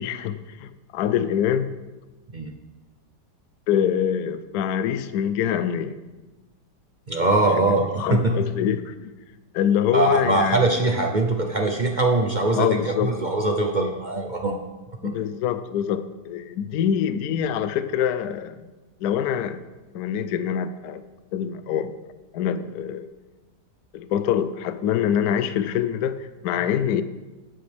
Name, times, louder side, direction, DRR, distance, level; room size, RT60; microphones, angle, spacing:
voice 1, 0.0-1.7 3.7-6.0 7.7-9.1 9.5-10.6 12.5-13.1 15.0-18.6 19.0-19.6 19.9-21.0 21.3-21.9 22.3-23.1 23.9-27.0, left 9 dB, 70° left, 12 dB, 1.0 m, -25 dB
voice 2, 7.1-8.4 9.9-14.5 15.0-15.1, right 2 dB, 50° right, 3 dB, 0.5 m, -22 dB
17.5 x 7.7 x 3.5 m, 1.2 s
omnidirectional pair, 1.8 m